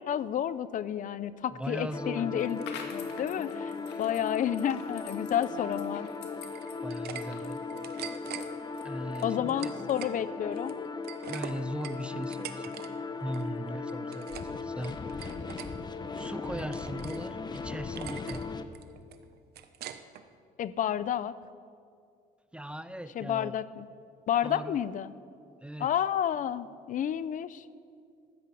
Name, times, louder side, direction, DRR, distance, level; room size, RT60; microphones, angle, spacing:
voice 1, 0.0-3.7 4.0-6.1 9.2-10.8 20.6-21.3 23.2-23.9 24.3-25.1 25.8-27.7, left 10 dB, 50° left, 16 dB, 0.6 m, -30 dB
voice 2, 1.5-2.5 3.9-4.0 6.8-7.6 8.8-9.7 11.3-12.8 13.2-15.4 16.1-18.4 22.5-23.6 24.4-24.8 25.6-25.9, right 1 dB, 5° right, 13 dB, 0.5 m, -39 dB
sound 1, 1.9-18.6, left 4 dB, 25° left, 1.0 m, -38 dB
sound 2, 2.4-9.4, left 7 dB, 85° left, 2.1 m, -49 dB
sound 3, 6.4-7.2 7.5-8.4 9.1-10.2 10.5-12.9 13.1-13.5 13.9-14.5 14.8-15.7 16.1-17.2 17.5-17.6 18.0-18.4 18.7-20.2, right 11 dB, 70° right, 1.0 m, -43 dB
13.0 x 13.0 x 8.5 m, 2.3 s
cardioid pair, 110°, 17 cm